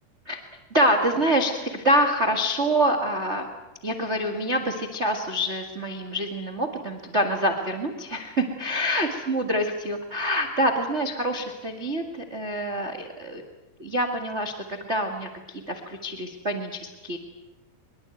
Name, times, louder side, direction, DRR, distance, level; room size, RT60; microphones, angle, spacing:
voice 1, 0.7-3.5 3.8-13.4 13.8-17.2, right 1 dB, 65° right, 5 dB, 0.6 m, -26 dB
23.5 x 22.5 x 9.2 m, 1.0 s
omnidirectional pair, 5.0 m